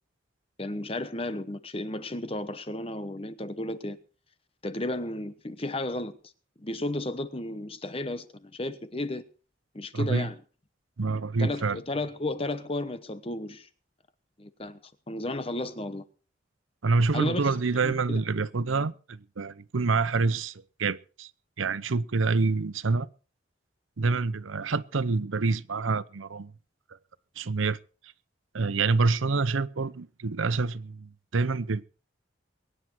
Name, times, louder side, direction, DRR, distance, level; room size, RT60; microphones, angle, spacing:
voice 1, 0.6-4.0 4.6-6.2 6.6-9.2 9.7-10.3 11.4-13.7 14.4-14.8 15.1-16.0 17.1-17.6 17.8-18.2, left 1 dB, 30° left, 1.1 m, -33 dB
voice 2, 9.9-10.3 11.0-11.8 16.8-21.3 21.6-23.1 24.0-26.5 27.4-27.8 28.0-28.1 28.5-31.8, right 4 dB, 85° right, 0.7 m, -27 dB
22.5 x 9.8 x 4.5 m
head